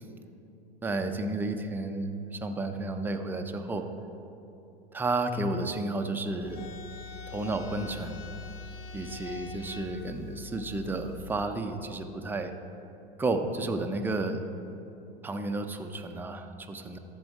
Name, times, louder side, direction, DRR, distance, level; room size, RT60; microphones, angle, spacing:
voice 1, 0.8-3.9 4.9-6.7 7.3-8.2 8.9-12.5 13.2-14.4 15.2-17.0, right 2 dB, 5° right, 5 dB, 0.4 m, -32 dB
sound 1, 6.4-11.4, left 3 dB, 45° left, 0.8 m, -43 dB
13.5 x 4.5 x 4.6 m, 2.8 s
hypercardioid pair, 105°, 31 cm